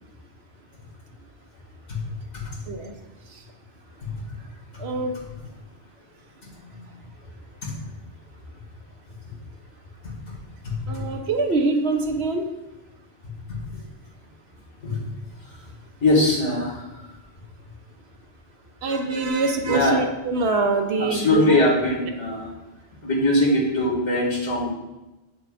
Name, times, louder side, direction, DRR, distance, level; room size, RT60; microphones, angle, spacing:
voice 1, 4.8-5.2 10.9-12.5 18.8-21.6, right 3 dB, 65° right, 5 dB, 1.0 m, -24 dB
voice 2, 6.4-6.9 7.6-7.7 10.0-10.1 10.6-11.0 13.5-13.6 14.8-15.0 15.5-15.6 16.0-17.0 19.6-20.0 21.0-22.5 23.0-24.7, left 2 dB, 75° left, -4 dB, 2.5 m, -23 dB
8.7 x 6.7 x 2.5 m, 1.0 s
omnidirectional pair, 1.2 m